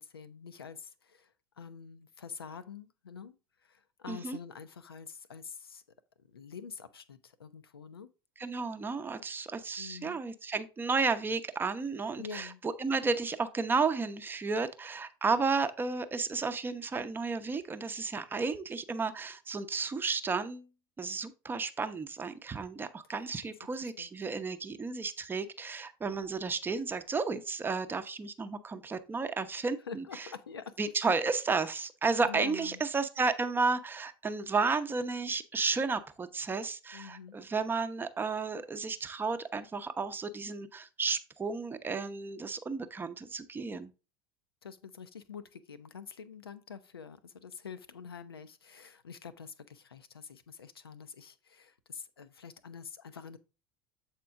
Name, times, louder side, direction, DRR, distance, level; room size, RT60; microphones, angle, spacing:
voice 1, 0.0-5.8 6.2-8.1 9.8-10.2 12.2-12.6 23.8-24.1 29.8-30.8 32.3-32.8 36.9-37.4 44.6-53.4, left 6 dB, 80° left, 0.5 m, -46 dB
voice 2, 4.1-4.4 8.4-20.7 21.0-30.0 30.8-43.9, right 4 dB, 15° right, 0.6 m, -32 dB
7.6 x 4.4 x 3.5 m
figure-of-eight pair, 70°, 12 cm